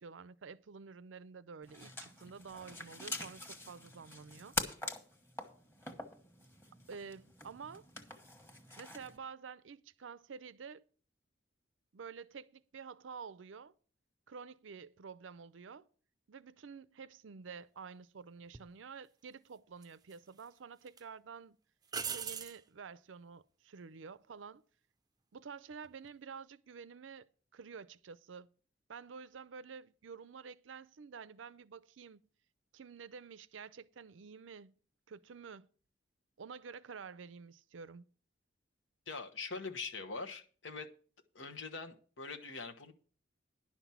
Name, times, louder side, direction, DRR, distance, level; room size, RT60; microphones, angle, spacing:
voice 1, 0.0-4.6 6.9-7.9 8.8-10.8 11.9-13.7 14.3-15.9 16.3-21.6 22.0-24.6 25.3-28.5 28.9-32.2 32.7-34.8 35.1-35.7 36.4-38.1, right 5 dB, 85° right, 0.5 m, -50 dB
sound 1, 1.6-9.2, left 2 dB, 15° left, 1.3 m, -44 dB
sound 2, 18.5-18.7 19.8-20.5 20.9-21.0 21.9-22.6 25.7-26.1, right 6 dB, 20° right, 0.5 m, -40 dB
voice 2, 39.1-40.9 41.3-42.9, left 4 dB, 85° left, 1.2 m, -43 dB
11.0 x 6.0 x 7.1 m
head